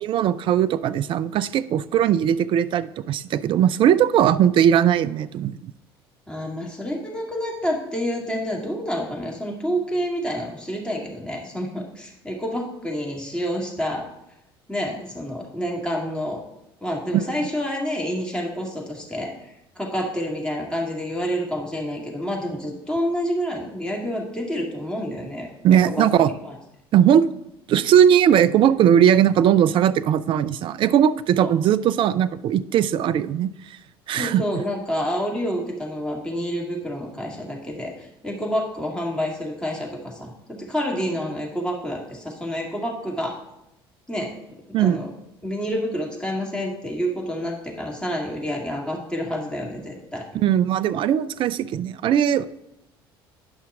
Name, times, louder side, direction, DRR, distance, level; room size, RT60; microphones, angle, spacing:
voice 1, 0.0-5.7 17.1-17.3 25.6-26.3 26.9-27.3 27.7-33.5 34.1-34.6 44.7-45.0 50.3-52.4, right 9 dB, 40° right, 15 dB, 0.4 m, -19 dB
voice 2, 6.3-14.1 14.7-16.4 16.8-25.5 26.0-26.6 31.4-31.5 34.2-43.4 44.1-44.3 44.8-45.1 45.4-50.2, equal, 5° left, -1 dB, 2.1 m, -28 dB
9.8 x 5.7 x 3.6 m, 0.86 s
figure-of-eight pair, 60°, 13 cm